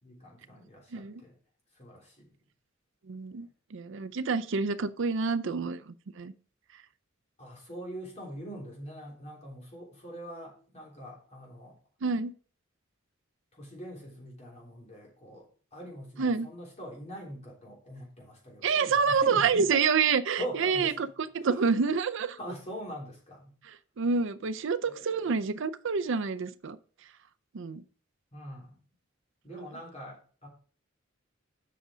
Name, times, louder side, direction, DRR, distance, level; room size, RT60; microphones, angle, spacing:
voice 1, 0.0-1.4 1.8-2.3 7.4-11.8 13.6-15.5 15.7-19.8 20.4-21.1 21.4-21.6 22.4-23.6 24.8-25.4 28.3-28.8 29.4-30.5, equal, 35° left, 3.5 m, -43 dB
voice 2, 3.1-5.8 6.2-6.3 12.0-12.3 16.2-16.5 18.6-21.1 21.3-22.4 24.0-26.8 27.5-27.8 29.5-29.6, right 5 dB, 65° right, 0.5 m, -27 dB
7.9 x 6.1 x 5.0 m
head